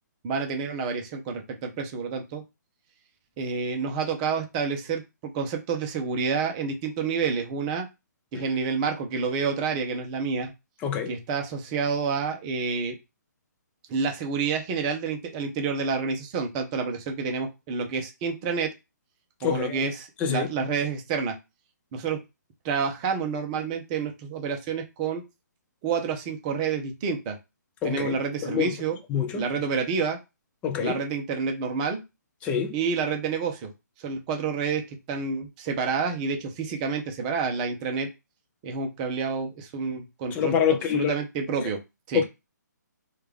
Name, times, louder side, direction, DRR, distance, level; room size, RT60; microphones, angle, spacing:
voice 1, 0.2-2.4 3.4-5.0 5.3-7.9 8.3-10.5 11.1-12.9 13.9-18.7 19.4-21.4 21.9-22.2 22.6-25.2 25.8-27.4 27.8-29.0 29.3-30.2 30.8-32.0 32.7-33.7 34.0-34.8 35.1-38.1 38.6-40.5 40.9-41.8 42.1-42.2, right 5 dB, 25° right, 0.7 m, -28 dB
voice 2, 10.8-11.1 19.4-19.9 20.2-20.5 27.8-28.1 28.4-28.7 29.1-29.5 30.6-31.0 32.4-32.7 40.3-41.1 42.1-42.2, left 7 dB, 15° left, 0.4 m, -26 dB
3.2 x 2.4 x 3.4 m
figure-of-eight pair, 145°, 10 cm